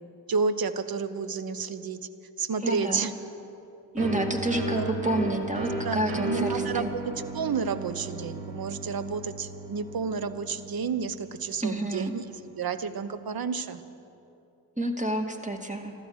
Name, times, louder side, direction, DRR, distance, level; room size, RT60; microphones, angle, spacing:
voice 1, 0.3-2.0 2.4-3.1 4.0-4.2 4.7-4.9 5.8-12.2 12.6-13.8, right 5 dB, 45° right, 13 dB, 1.1 m, -31 dB
voice 2, 2.6-3.1 3.9-6.9 11.6-12.2 14.8-15.9, right 1 dB, 15° right, 4 dB, 2.2 m, -29 dB
sound 1, 4.0-11.4, right 2 dB, 70° right, 2.9 m, -35 dB
13.5 x 12.5 x 8.1 m, 2.7 s
supercardioid pair, 45°, 50 cm